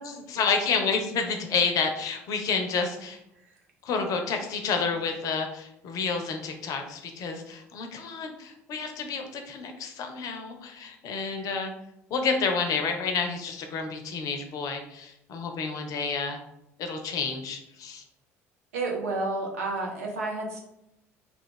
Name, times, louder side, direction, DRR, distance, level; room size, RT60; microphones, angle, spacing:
voice 1, 0.0-3.2 3.8-11.7 12.1-16.4 16.8-18.0, left 5 dB, 55° left, 5 dB, 0.5 m, -29 dB
voice 2, 18.7-20.6, right 2 dB, 80° right, 0 dB, 0.6 m, -30 dB
2.3 x 2.3 x 3.5 m, 0.83 s
hypercardioid pair, 60°, 7 cm